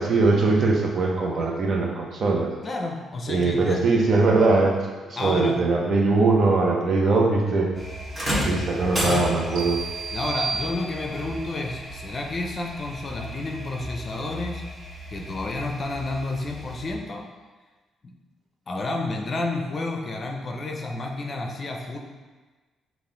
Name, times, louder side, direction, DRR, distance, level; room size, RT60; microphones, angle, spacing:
voice 1, 0.0-2.5 3.3-4.8 5.1-7.7 8.4-9.8, right 3 dB, 55° right, -1 dB, 0.8 m, -21 dB
voice 2, 2.6-3.8 5.2-5.7 10.1-14.7 15.1-17.3 18.0-18.1 18.7-22.0, left 2 dB, 40° left, 2 dB, 0.5 m, -30 dB
sound 1, 7.7-16.9, left 1 dB, 5° left, 1.3 m, -39 dB
sound 2, 8.1-9.7 11.1-11.3 12.2-12.3, right 1 dB, 20° right, 1.1 m, -27 dB
sound 3, 9.6-11.4, right 5 dB, 80° right, 0.4 m, -32 dB
5.4 x 2.5 x 3.8 m, 1.3 s
cardioid pair, 90°, 0 cm